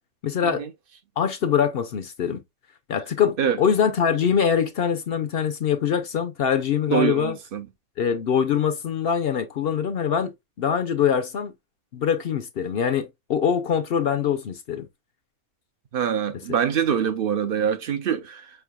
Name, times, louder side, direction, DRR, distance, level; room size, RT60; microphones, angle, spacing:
voice 1, 0.2-0.6 1.2-2.4 2.9-7.3 8.0-10.3 10.6-11.5 11.9-14.9, left 7 dB, 60° left, 0.6 m, -23 dB
voice 2, 6.9-7.7 15.9-18.5, right 8 dB, 60° right, 0.6 m, -24 dB
5.2 x 3.5 x 2.3 m
omnidirectional pair, 1.5 m